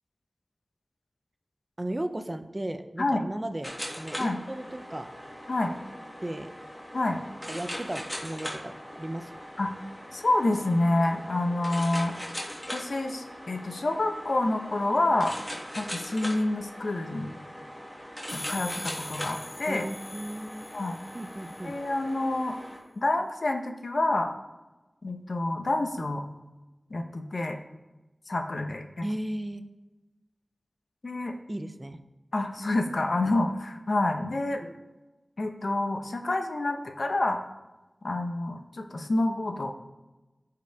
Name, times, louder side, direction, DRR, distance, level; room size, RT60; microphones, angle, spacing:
voice 1, 1.8-5.1 6.2-6.5 7.5-9.4 19.7-20.6 21.1-21.8 29.0-29.6 31.5-32.0, right 1 dB, 30° right, 8 dB, 0.7 m, -35 dB
sound 1, 3.6-22.8, equal, 5° left, 2.2 m, -40 dB
voice 2, 10.1-12.3 12.7-15.4 15.8-17.3 18.3-19.9 20.7-21.0 21.6-22.5 23.0-24.3 25.0-26.2 26.9-27.6 28.3-29.1 31.0-31.3 32.3-34.6 35.4-37.4 38.0-39.7, left 2 dB, 75° left, 4 dB, 0.9 m, -28 dB
sound 2, 18.3-21.9, left 2 dB, 45° left, 1.2 m, -43 dB
14.0 x 4.8 x 3.5 m, 1.1 s
wide cardioid pair, 60°, 0 cm